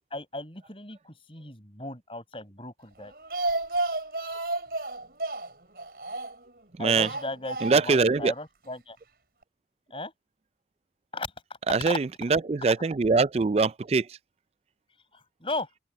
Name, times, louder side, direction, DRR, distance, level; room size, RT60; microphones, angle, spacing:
voice 1, 0.1-3.1 6.8-9.0 9.9-10.1 11.1-11.3 11.8-12.0 15.1-15.7, left 2 dB, 30° left, 7.8 m, -36 dB
Speech, 3.0-6.5 6.9-8.1 8.3-8.4 8.7-8.8, right 2 dB, 60° right, 6.1 m, -32 dB
voice 2, 6.8-7.1 7.6-8.3 11.7-14.1, right 4 dB, 35° right, 0.4 m, -23 dB
open air
head